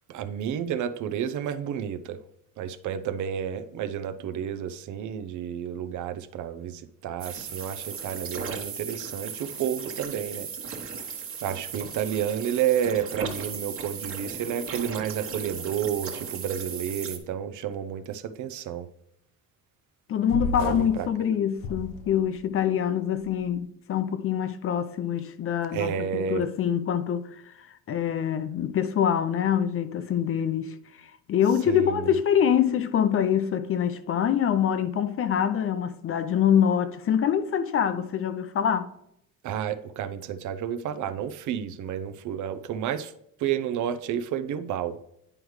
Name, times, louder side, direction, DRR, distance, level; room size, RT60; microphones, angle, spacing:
voice 1, 0.1-2.2 2.6-10.5 11.4-18.9 20.6-21.1 25.7-26.4 31.7-32.1 39.4-43.1 43.4-45.0, right 9 dB, 60° right, 0.6 m, -31 dB
sound 1, 7.2-17.2, right 6 dB, 40° right, 1.3 m, -36 dB
voice 2, 20.1-38.9, left 9 dB, 40° left, 0.6 m, -25 dB
sound 2, 20.3-21.0 21.6-22.5, left 2 dB, 70° left, 1.1 m, -32 dB
9.8 x 4.8 x 3.2 m
cardioid pair, 115°, 34 cm